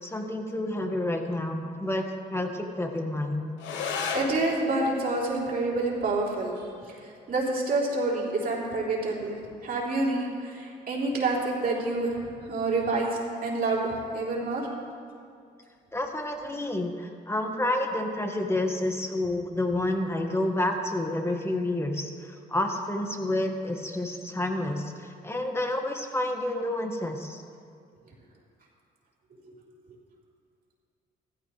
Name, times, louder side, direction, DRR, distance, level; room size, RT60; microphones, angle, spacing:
voice 1, 0.0-3.5 15.9-27.4, left 1 dB, 15° left, 3 dB, 1.6 m, -29 dB
sound 1, 3.6-12.6, left 5 dB, 85° left, 1.2 m, -39 dB
voice 2, 4.1-6.6 7.0-14.7 29.4-29.5, right 2 dB, 55° right, -4 dB, 3.5 m, -28 dB
15.5 x 14.0 x 3.2 m, 2.2 s
supercardioid pair, 70°, 18 cm